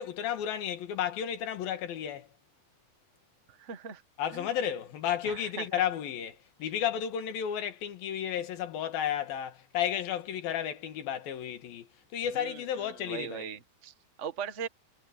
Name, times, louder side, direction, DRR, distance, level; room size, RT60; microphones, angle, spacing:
voice 1, 0.0-2.3 4.2-11.9 12.1-13.5, left 9 dB, 85° left, 3.6 m, -33 dB
voice 2, 3.5-4.0 4.3-4.5 5.2-5.8 12.3-14.7, right 7 dB, 75° right, 0.6 m, -40 dB
omnidirectional pair, 4.1 m